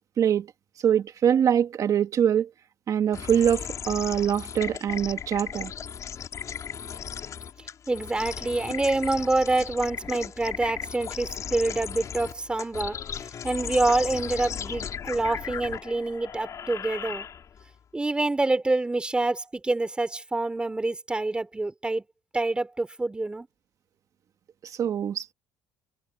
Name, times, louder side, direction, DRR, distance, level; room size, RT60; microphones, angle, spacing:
voice 1, 0.2-0.5 0.8-2.5 2.9-5.7 24.6-25.3, right 9 dB, 45° right, 2.2 m, -24 dB
sound 1, 3.1-17.7, left 8 dB, 45° left, 5.0 m, -36 dB
voice 2, 7.9-13.0 13.4-17.3 17.9-22.0 22.3-23.5, right 2 dB, 15° right, 3.8 m, -26 dB
cardioid pair, 115°, 8 cm